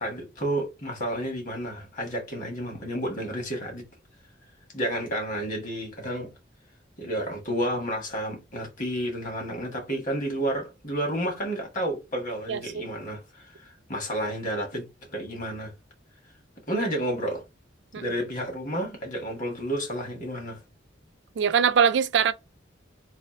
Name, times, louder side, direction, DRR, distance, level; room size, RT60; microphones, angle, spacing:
voice 1, 0.0-3.8 4.7-6.3 7.0-14.9 15.1-15.7 16.7-17.4 18.0-20.6, right 1 dB, 45° left, 1.5 m, -31 dB
voice 2, 12.5-12.8 17.9-18.0 21.4-22.3, right 7 dB, 70° right, 0.4 m, -22 dB
3.3 x 2.7 x 4.1 m
head